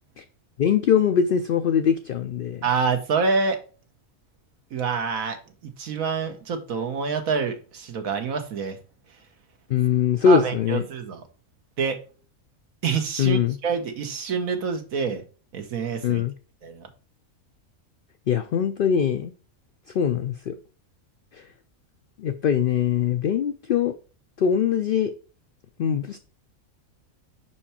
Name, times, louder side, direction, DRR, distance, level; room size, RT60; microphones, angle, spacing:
voice 1, 0.6-2.7 9.7-10.8 13.2-13.6 16.0-16.3 18.3-19.3 19.9-20.5 21.3-21.5 22.2-23.9 24.4-25.1 25.8-26.2, left 7 dB, 75° left, 9 dB, 0.5 m, -22 dB
voice 2, 2.6-3.6 4.7-5.4 5.6-8.8 10.3-11.2 11.8-12.0 12.8-15.2 15.5-16.2 16.6-16.9, right 5 dB, 80° right, 6 dB, 1.5 m, -26 dB
5.7 x 4.5 x 4.3 m, 0.37 s
omnidirectional pair, 1.4 m